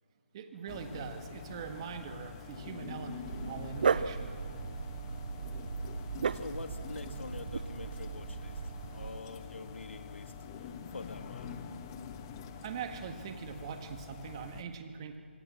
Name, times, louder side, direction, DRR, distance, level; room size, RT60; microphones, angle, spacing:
voice 1, 0.3-4.4 12.6-15.2, right 7 dB, 25° right, 7 dB, 1.5 m, -42 dB
sound 1, 0.7-14.6, left 6 dB, 20° left, 1.0 m, -46 dB
Dog, 3.3-9.2, right 6 dB, 45° right, 0.6 m, -35 dB
voice 2, 6.3-11.6, left 3 dB, 70° left, 7 dB, 2.1 m, -46 dB
25.0 x 24.0 x 7.5 m, 2.5 s
figure-of-eight pair, 160°, 7 cm